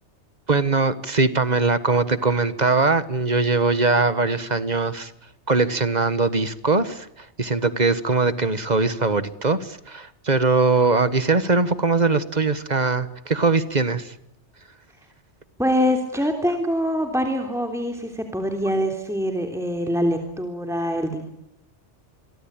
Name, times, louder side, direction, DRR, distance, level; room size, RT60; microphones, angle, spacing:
voice 1, 0.5-5.1 5.5-14.1, right 3 dB, 40° right, 14 dB, 1.5 m, -21 dB
voice 2, 15.6-21.3, equal, ahead, 4 dB, 3.3 m, -24 dB
28.0 x 24.0 x 8.9 m, 0.82 s
omnidirectional pair, 1.2 m